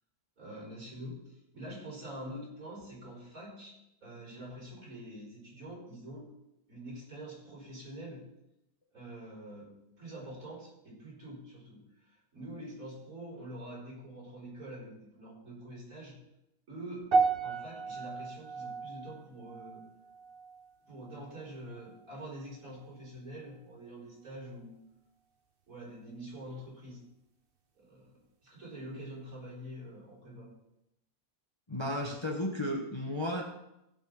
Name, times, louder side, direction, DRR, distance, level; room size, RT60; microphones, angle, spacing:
voice 1, 0.4-3.7 4.0-6.3 6.7-8.3 8.9-16.2 16.7-17.1 17.4-19.8 20.8-24.8 25.7-27.0 27.8-28.1 28.4-30.5, right 1 dB, 65° right, -4 dB, 5.6 m, -45 dB
sound 1, 17.1-21.5 21.8-22.2 22.8-22.9, right 4 dB, 40° right, 1.3 m, -34 dB
voice 2, 31.7-33.4, left 1 dB, 20° left, 1 dB, 1.2 m, -33 dB
15.5 x 5.7 x 6.7 m, 0.85 s
omnidirectional pair, 1.6 m